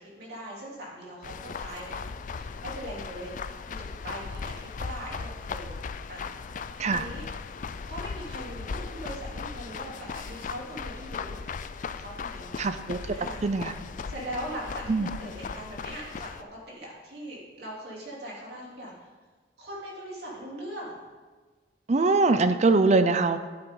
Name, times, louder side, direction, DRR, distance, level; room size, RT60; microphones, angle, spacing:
voice 1, 0.0-1.3 1.6-3.8 4.0-5.7 6.1-6.3 6.9-7.2 7.9-11.4 11.9-12.6 13.1-13.4 14.1-16.3 16.7-18.9 19.6-21.0, equal, 65° right, -4 dB, 3.2 m, -40 dB
sound 1, 1.2-16.4, left 5 dB, 45° left, 0.4 m, -37 dB
voice 2, 12.6-13.0 13.4-13.7 14.9-15.1 21.9-23.4, right 3 dB, 40° right, 10 dB, 0.5 m, -22 dB
11.0 x 8.7 x 3.8 m, 1.4 s
head